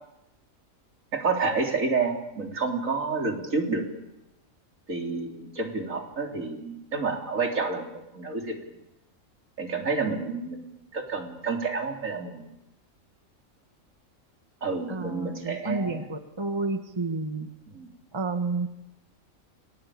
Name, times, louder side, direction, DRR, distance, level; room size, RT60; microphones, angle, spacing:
voice 1, 1.1-3.8 4.9-8.6 9.6-12.5 14.6-16.0 17.7-17.9, right 4 dB, 75° right, 2 dB, 4.2 m, -29 dB
voice 2, 14.9-17.5 18.1-18.7, right 3 dB, 20° right, 7 dB, 1.7 m, -30 dB
29.0 x 21.5 x 8.8 m, 0.89 s
omnidirectional pair, 1.4 m